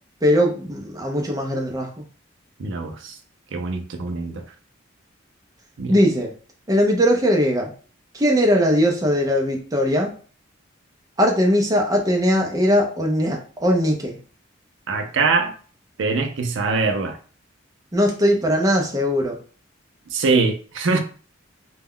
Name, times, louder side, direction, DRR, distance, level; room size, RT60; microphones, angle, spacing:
voice 1, 0.2-2.0 5.9-6.3 6.7-7.7 8.1-10.1 11.2-14.2 17.9-19.4, equal, 20° right, 0.5 m, -20 dB
voice 2, 2.6-3.2 3.5-4.4 5.8-6.0 14.9-15.5 16.0-17.2 20.1-21.0, right 4 dB, 65° right, 0.5 m, -23 dB
2.2 x 2.1 x 3.6 m
head